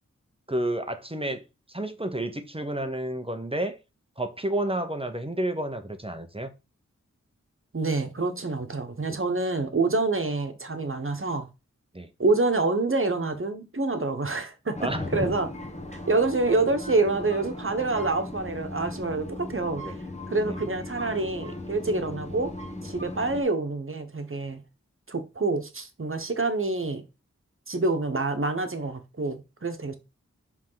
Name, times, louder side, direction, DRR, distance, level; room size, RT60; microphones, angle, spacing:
voice 1, 0.5-1.4 1.7-3.8 4.2-6.5 11.9-12.1 14.8-15.1 19.8-19.9 20.4-20.6, right 1 dB, 20° right, 0.9 m, -30 dB
voice 2, 7.7-11.5 12.2-15.5 15.9-20.0 20.3-22.5 22.8-24.6 25.1-27.1 27.7-29.9, right 3 dB, 45° right, 1.3 m, -27 dB
sound 1, 14.7-23.4, left 1 dB, 25° left, 1.5 m, -37 dB
5.3 x 3.7 x 5.7 m
wide cardioid pair, 45°, 29 cm